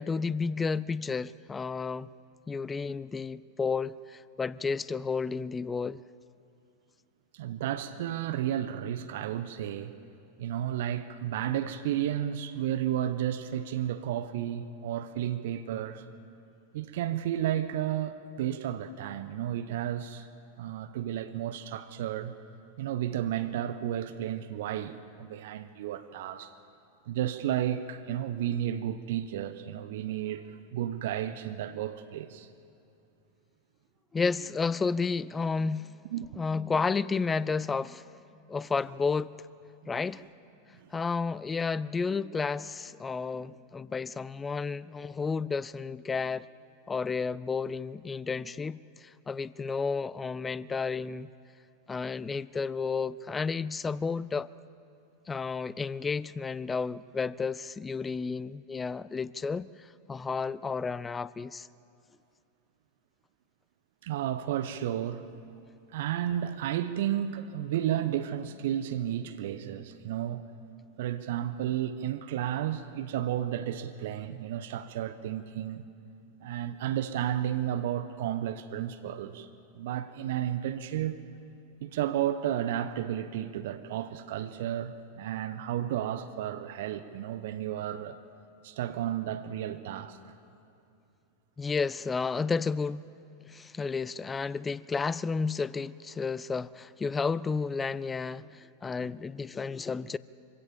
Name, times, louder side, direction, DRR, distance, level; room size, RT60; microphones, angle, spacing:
voice 1, 0.0-2.1 2.5-6.0 34.1-36.0 36.4-38.0 38.5-39.3 39.9-40.3 40.9-46.5 46.9-51.3 51.9-54.5 55.3-59.7 60.1-61.7 91.6-93.0 93.5-100.2, left 5 dB, 15° left, 0.4 m, -32 dB
voice 2, 7.3-9.9 10.4-16.1 16.7-20.3 20.6-22.3 22.8-26.5 27.1-32.5 36.1-36.3 39.8-39.9 40.8-40.9 64.0-65.3 65.9-70.5 71.0-75.8 76.4-79.5 79.7-81.2 81.8-88.2 88.6-90.3 99.0-99.1, right 11 dB, 55° right, 0.9 m, -32 dB
24.5 x 16.5 x 7.1 m
figure-of-eight pair, 90°, 0 cm